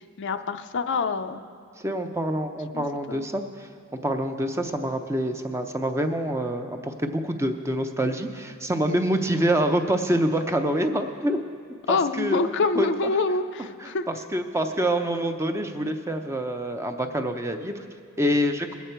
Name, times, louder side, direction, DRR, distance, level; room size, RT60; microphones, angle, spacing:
voice 1, 0.0-1.4 2.7-3.3 11.9-14.0, left 4 dB, 55° left, 8 dB, 0.5 m, -26 dB
voice 2, 1.8-3.7 4.0-11.4 11.9-12.4 12.8-13.1 13.8-17.8 18.2-18.7, right 1 dB, 15° right, 6 dB, 0.6 m, -26 dB
20.5 x 8.2 x 4.5 m, 2.2 s
head